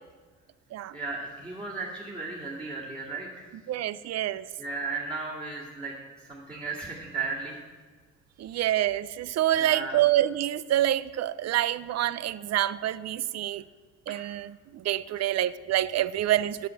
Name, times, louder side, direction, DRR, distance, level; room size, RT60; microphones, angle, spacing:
voice 1, 0.9-3.5 4.6-5.9 6.2-7.6 9.5-10.0 14.1-14.2, right 3 dB, 20° right, -6 dB, 2.3 m, -35 dB
voice 2, 3.7-4.5 8.4-13.6 14.1-16.7, right 13 dB, 60° right, 17 dB, 0.5 m, -27 dB
9.2 x 7.1 x 7.6 m, 1.5 s
cardioid pair, 90°, 30 cm